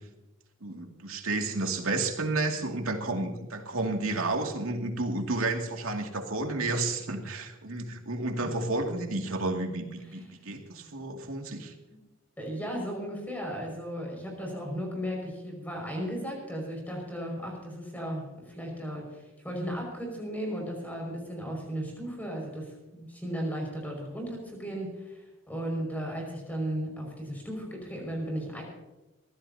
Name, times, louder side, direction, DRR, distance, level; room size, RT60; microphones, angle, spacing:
voice 1, 0.6-11.7, right 2 dB, 85° right, 3 dB, 2.4 m, -31 dB
voice 2, 12.4-28.6, equal, 10° left, 0 dB, 5.7 m, -35 dB
23.0 x 15.5 x 2.8 m, 1.1 s
head